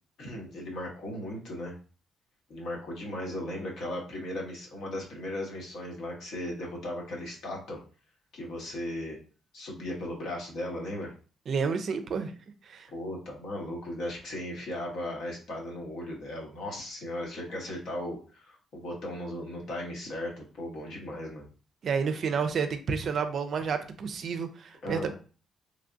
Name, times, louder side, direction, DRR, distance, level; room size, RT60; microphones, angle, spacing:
voice 1, 0.2-1.8 2.5-7.8 8.3-9.2 9.5-11.1 12.9-21.5 24.8-25.1, left 1 dB, 70° left, -1 dB, 1.1 m, -37 dB
voice 2, 11.5-12.4 12.7-12.9 21.8-25.1, right 5 dB, 55° right, 8 dB, 0.4 m, -30 dB
3.2 x 2.3 x 2.5 m, 0.37 s
cardioid pair, 90°, 0 cm